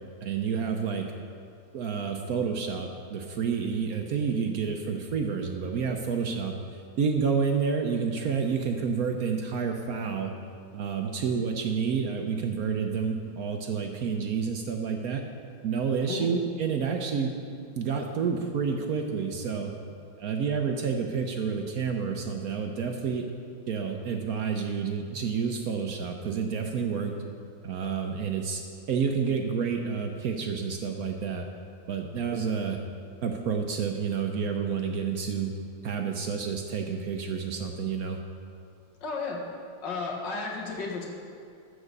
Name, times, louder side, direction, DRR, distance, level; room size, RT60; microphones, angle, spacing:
voice 1, 0.2-1.1 1.7-10.3 10.7-15.2 15.6-17.3 17.8-19.7 20.2-23.2 23.7-27.1 27.6-28.6 28.9-31.5 31.9-32.8 33.2-35.5 35.8-38.2, right 6 dB, 65° right, 3 dB, 0.9 m, -29 dB
voice 2, 39.0-39.4 39.8-41.1, left 4 dB, 60° left, -1 dB, 2.0 m, -33 dB
14.5 x 4.9 x 6.7 m, 2.3 s
omnidirectional pair, 2.2 m